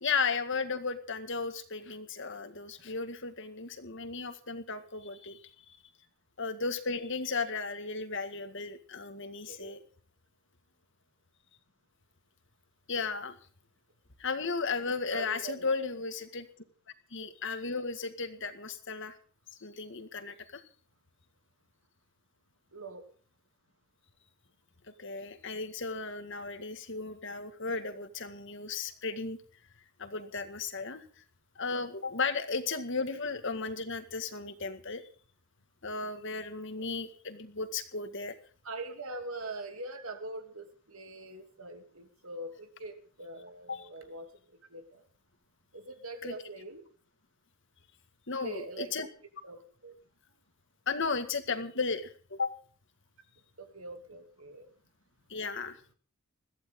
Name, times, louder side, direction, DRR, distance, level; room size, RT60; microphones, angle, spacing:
voice 1, 0.0-5.4 6.4-9.8 12.9-13.4 14.2-16.5 17.1-19.2 19.6-20.6 25.0-29.4 30.0-31.0 31.6-35.0 35.8-38.4 43.7-43.9 46.2-46.3 48.3-49.1 50.9-52.5 55.3-55.8, left 4 dB, 55° left, 9 dB, 2.0 m, -35 dB
voice 2, 15.1-15.7 22.7-23.0 36.7-36.9 38.6-44.3 44.7-45.1 45.7-46.8 48.4-48.9 49.4-50.0 53.6-54.7, right 2 dB, 75° right, 6 dB, 3.0 m, -43 dB
21.5 x 15.0 x 3.8 m, 0.42 s
head